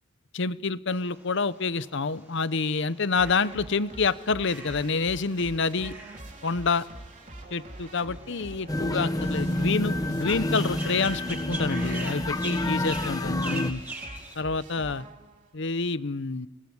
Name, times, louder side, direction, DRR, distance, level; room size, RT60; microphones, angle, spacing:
voice 1, 0.3-5.9 6.4-6.8 7.5-13.8 14.4-15.0 15.5-16.5, left 4 dB, 60° left, 15 dB, 0.9 m, -27 dB
sound 1, 0.9-14.3, right 2 dB, 10° right, 5.2 m, -43 dB
sound 2, 3.2-15.6, right 1 dB, 40° right, 3.2 m, -44 dB
sound 3, 8.7-13.7, left 1 dB, 20° left, 0.8 m, -28 dB
24.5 x 20.5 x 9.7 m, 1.0 s
head